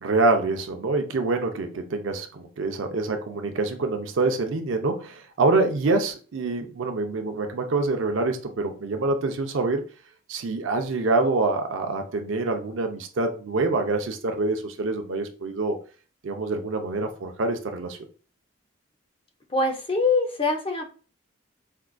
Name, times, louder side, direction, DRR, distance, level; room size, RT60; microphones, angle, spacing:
voice 1, 0.0-9.8 10.3-15.8 16.2-18.0, right 3 dB, 80° right, 5 dB, 0.5 m, -26 dB
voice 2, 19.5-20.8, left 3 dB, 25° left, 3 dB, 0.5 m, -23 dB
4.4 x 2.4 x 2.2 m, 0.38 s
head